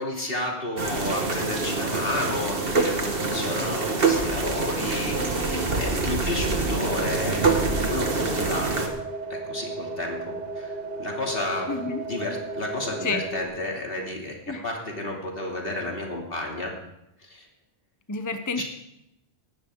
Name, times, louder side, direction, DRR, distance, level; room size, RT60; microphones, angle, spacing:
voice 1, 0.0-7.5 7.9-8.9 9.3-11.7 12.0-16.7 17.2-17.5 18.6-18.7, left 2 dB, 60° left, -1 dB, 3.0 m, -32 dB
sound 1, 0.8-8.9, right 3 dB, 60° right, 1.8 m, -25 dB
sound 2, 6.9-13.4, right 3 dB, 40° right, 1.3 m, -34 dB
voice 2, 11.7-12.0 13.0-13.2 14.5-14.6 18.1-18.6, left 4 dB, 20° left, 8 dB, 0.7 m, -29 dB
18.0 x 12.0 x 3.8 m, 0.84 s
omnidirectional pair, 1.1 m